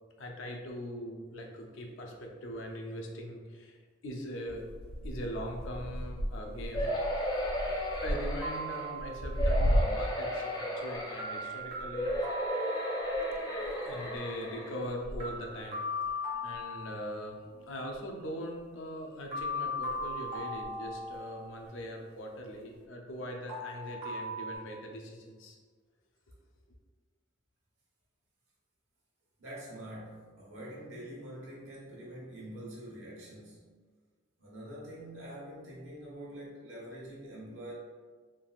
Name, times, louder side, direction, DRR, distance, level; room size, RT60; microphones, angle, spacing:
voice 1, 0.2-4.6 5.0-6.9 8.0-12.1 13.9-15.8 16.4-25.6, equal, 75° left, 1 dB, 0.5 m, -41 dB
sound 1, 4.5-10.3 10.6-17.7 17.9-18.7 19.4-21.2 21.6-22.0 22.7-22.8, equal, 50° right, 0.3 m, -36 dB
sound 2, 6.7-8.9 9.4-11.5 11.9-14.8 15.4-15.5 15.7-15.8, equal, 20° left, 0.4 m, -34 dB
sound 3, 8.4-9.6 11.2-13.5 15.2-17.5 19.3-21.7 23.5-24.6, left 1 dB, 30° right, 0.7 m, -38 dB
voice 2, 29.4-33.6 34.4-37.7, right 1 dB, 80° right, -5 dB, 1.0 m, -45 dB
3.3 x 2.4 x 2.3 m, 1.5 s
head